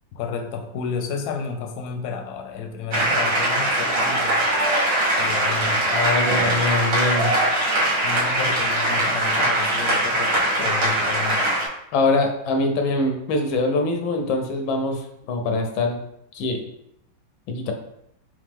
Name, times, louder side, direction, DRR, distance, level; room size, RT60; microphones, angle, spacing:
voice 1, 0.1-4.6 5.2-5.9 8.0-11.5, left 5 dB, 70° left, 4 dB, 1.0 m, -31 dB
sound 1, 2.9-11.7, right 1 dB, 55° right, 1.5 m, -21 dB
voice 2, 5.9-7.3 11.9-15.0 15.3-16.0 16.3-16.6 17.5-17.7, left 2 dB, 90° left, 5 dB, 1.4 m, -23 dB
3.8 x 3.2 x 3.6 m, 0.79 s
omnidirectional pair, 2.1 m